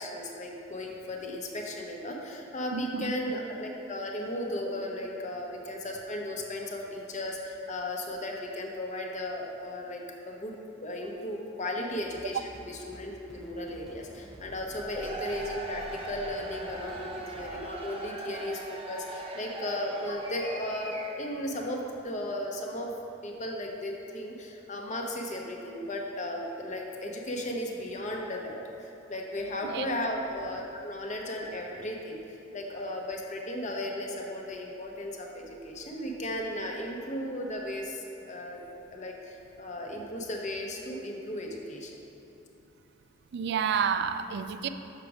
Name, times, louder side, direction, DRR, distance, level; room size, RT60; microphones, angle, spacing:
voice 1, 0.0-10.5 10.8-12.4 12.6-22.9 23.2-38.6 38.9-41.9, left 1 dB, 40° left, 0 dB, 0.9 m, -35 dB
voice 2, 2.7-3.1 29.6-29.9 43.3-44.7, right 7 dB, 60° right, 10 dB, 0.3 m, -30 dB
sound 1, 12.0-17.6, equal, ahead, 0.5 m, -50 dB
Cheering / Crowd, 14.7-21.4, right 2 dB, 30° right, 0.8 m, -40 dB
6.6 x 6.0 x 5.0 m, 2.9 s
head